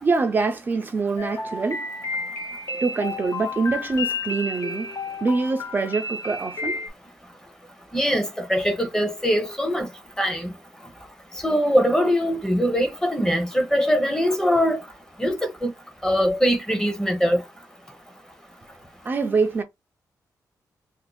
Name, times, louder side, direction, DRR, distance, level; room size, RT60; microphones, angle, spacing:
voice 1, 0.0-1.8 2.8-4.9 5.2-6.8 19.1-19.6, right 4 dB, 30° right, 0.4 m, -24 dB
sound 1, 1.2-6.9, left 3 dB, 50° left, 0.8 m, -31 dB
voice 2, 7.9-9.9 10.2-10.5 11.4-14.8 15.2-15.7 16.0-17.4, equal, 10° left, 0.8 m, -22 dB
2.6 x 2.5 x 3.9 m
wide cardioid pair, 145°, 6 cm